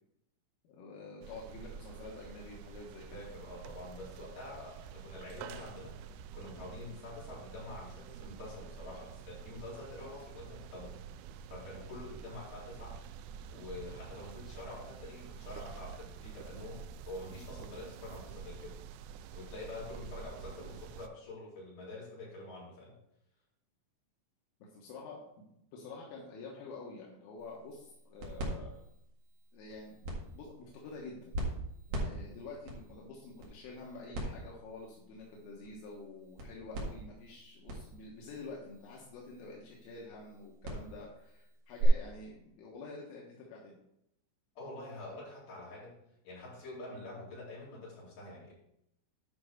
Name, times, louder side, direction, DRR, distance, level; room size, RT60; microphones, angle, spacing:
voice 1, 0.7-3.3 24.6-25.2 25.7-28.8 29.5-31.3 31.9-43.8, left 3 dB, 80° left, -3 dB, 3.9 m, -48 dB
sound 1, 1.2-21.1, right 8 dB, 85° right, 2.7 m, -48 dB
voice 2, 3.1-6.0 6.3-11.0 11.5-13.0 13.5-18.8 19.3-22.9 44.6-46.0 46.2-48.5, left 2 dB, 45° left, -7 dB, 5.2 m, -46 dB
sound 2, 27.4-41.9, right 2 dB, 55° right, 2.9 m, -43 dB
10.5 x 5.4 x 4.5 m, 0.77 s
omnidirectional pair, 5.9 m